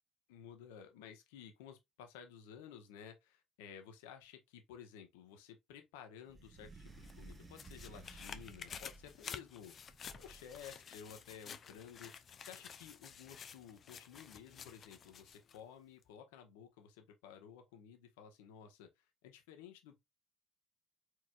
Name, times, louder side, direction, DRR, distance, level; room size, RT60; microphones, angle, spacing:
voice 1, 0.3-20.0, left 8 dB, 65° left, 1.1 m, -54 dB
sound 1, 6.3-9.3 9.9-10.8, right 3 dB, 30° right, 1.2 m, -56 dB
sound 2, 6.9-15.6 16.0-16.1, left 7 dB, 40° left, 0.6 m, -52 dB
4.7 x 4.2 x 2.4 m
figure-of-eight pair, 55°, 0 cm